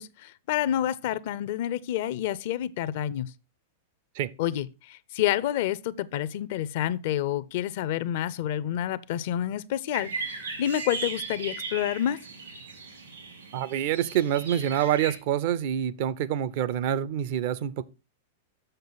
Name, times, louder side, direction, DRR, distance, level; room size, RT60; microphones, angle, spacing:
voice 1, 0.0-3.3 4.4-12.2, left 11 dB, 60° left, 0.5 m, -29 dB
sound 1, 9.9-15.2, right 4 dB, 85° right, 3.0 m, -37 dB
voice 2, 13.5-17.8, right 10 dB, 55° right, 0.5 m, -26 dB
6.7 x 6.6 x 3.9 m
hypercardioid pair, 100°, 0 cm